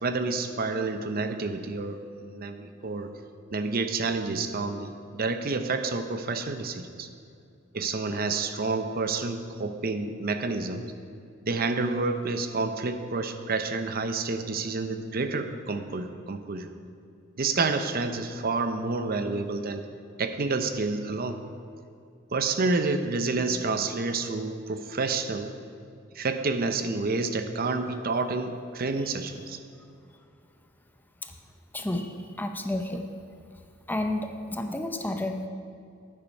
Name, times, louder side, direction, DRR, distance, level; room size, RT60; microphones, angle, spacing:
voice 1, 0.0-3.1 3.5-7.1 7.7-10.9 11.4-16.7 17.4-19.9 20.2-21.4 22.3-25.5 26.1-29.6, right 3 dB, 45° right, 8 dB, 0.7 m, -29 dB
voice 2, 31.7-33.1 33.9-35.5, left 1 dB, 10° left, 5 dB, 0.6 m, -31 dB
11.0 x 8.9 x 5.3 m, 2.5 s
head